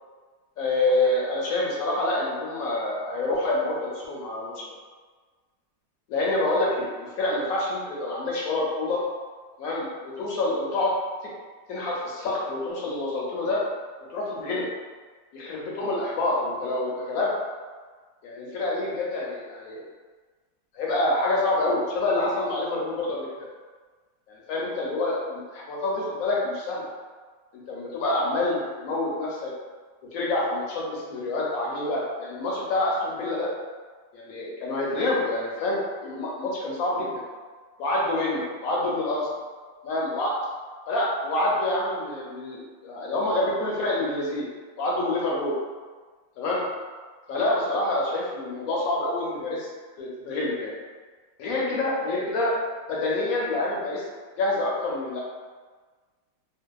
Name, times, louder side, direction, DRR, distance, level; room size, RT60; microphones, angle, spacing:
voice 1, 0.6-4.8 6.1-9.0 9.6-10.9 11.7-13.6 14.1-14.6 15.3-17.3 18.2-19.8 20.7-23.5 24.3-26.9 27.5-29.5 30.1-33.5 34.1-37.2 37.8-39.3 39.8-40.3 40.9-44.5 44.8-45.6 46.4-46.6 47.3-49.7 50.0-50.7 51.4-52.5 52.9-54.0 54.4-55.2, left 2 dB, 70° left, -4 dB, 0.9 m, -27 dB
2.6 x 2.2 x 2.2 m, 1.5 s
omnidirectional pair, 1.7 m